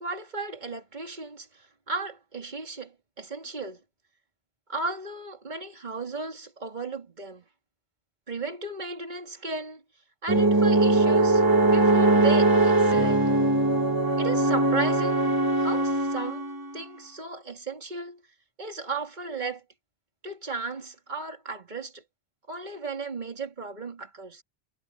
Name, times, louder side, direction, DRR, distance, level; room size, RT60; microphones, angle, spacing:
voice 1, 0.0-3.8 4.7-7.4 8.3-9.8 10.2-13.2 14.2-15.2 15.6-16.4 16.7-18.2 18.6-19.6 20.2-22.0 22.5-24.4, right 3 dB, 45° right, 2.6 m, -35 dB
sound 1, 10.3-16.7, right 2 dB, 20° right, 1.9 m, -21 dB
omnidirectional pair, 1.1 m